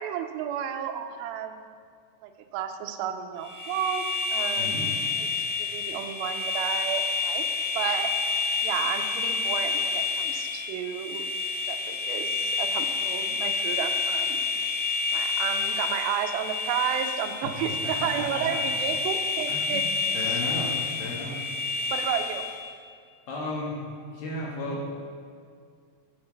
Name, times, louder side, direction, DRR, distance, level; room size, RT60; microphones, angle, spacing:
voice 1, 0.0-1.6 2.2-4.0 4.3-4.9 5.2-7.5 7.8-8.1 8.6-11.3 11.7-14.4 15.1-19.8 20.2-20.4 21.9-22.4, right 9 dB, 85° right, 5 dB, 2.2 m, -32 dB
sound 1, 3.4-22.6, left 4 dB, 10° right, 1.4 m, -29 dB
voice 2, 17.8-18.6 19.5-19.9 20.1-20.7 21.0-21.4 23.3-23.8 24.1-25.0, left 1 dB, 65° left, -4 dB, 3.1 m, -34 dB
8.0 x 5.7 x 6.7 m, 2.1 s
omnidirectional pair, 4.8 m